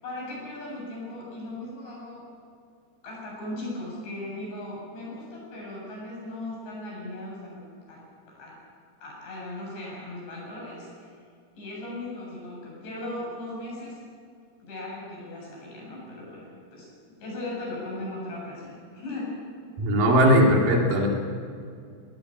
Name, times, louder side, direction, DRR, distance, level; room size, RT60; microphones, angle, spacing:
voice 1, 0.0-2.3 3.0-8.0 8.3-8.6 9.0-11.1 11.5-14.0 14.6-16.9 17.2-19.4, left 1 dB, 90° left, -4 dB, 10.0 m, -37 dB
voice 2, 19.8-21.1, equal, 55° right, 1 dB, 4.1 m, -19 dB
19.5 x 18.5 x 9.0 m, 2.3 s
omnidirectional pair, 4.9 m